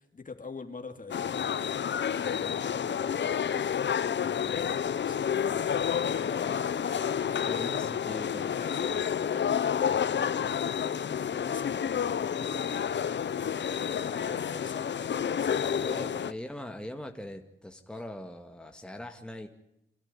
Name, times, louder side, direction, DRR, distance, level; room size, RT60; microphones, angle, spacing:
voice 1, 0.0-7.9 8.5-16.1, left 4 dB, 40° left, 7 dB, 2.8 m, -44 dB
sound 1, 1.1-16.3, left 8 dB, 65° left, 0.8 m, -30 dB
voice 2, 7.5-8.6 15.8-19.5, left 1 dB, 5° left, 4 dB, 2.0 m, -41 dB
27.0 x 13.5 x 9.7 m, 0.79 s
wide cardioid pair, 95°, 20 cm